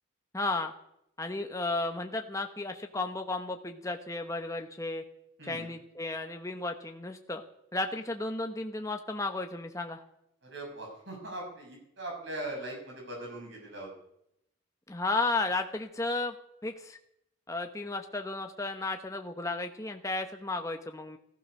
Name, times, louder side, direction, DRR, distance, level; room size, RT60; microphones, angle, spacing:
voice 1, 0.3-0.7 1.2-5.0 5.4-7.4 7.7-10.0 14.9-16.3 16.6-17.0 17.5-21.2, left 2 dB, 15° left, 5 dB, 1.0 m, -33 dB
voice 2, 5.4-5.7 10.4-13.9, right 1 dB, 60° right, 0 dB, 6.7 m, -40 dB
15.5 x 14.0 x 6.5 m, 0.78 s
head